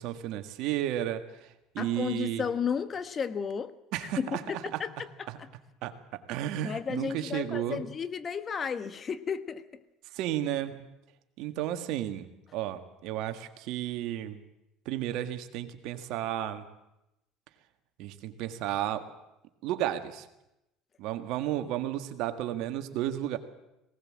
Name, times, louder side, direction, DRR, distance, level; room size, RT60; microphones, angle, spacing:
voice 1, 0.0-2.4 3.9-4.8 5.3-5.4 5.8-7.8 10.1-10.8 11.4-14.4 14.9-16.7 18.0-19.1 19.6-20.3 21.0-23.4, right 12 dB, 70° right, 1.7 m, -33 dB
voice 2, 1.8-3.7 4.0-4.9 6.6-9.6, left 6 dB, 35° left, 1.2 m, -33 dB
19.5 x 18.0 x 7.6 m
supercardioid pair, 85°, 0 cm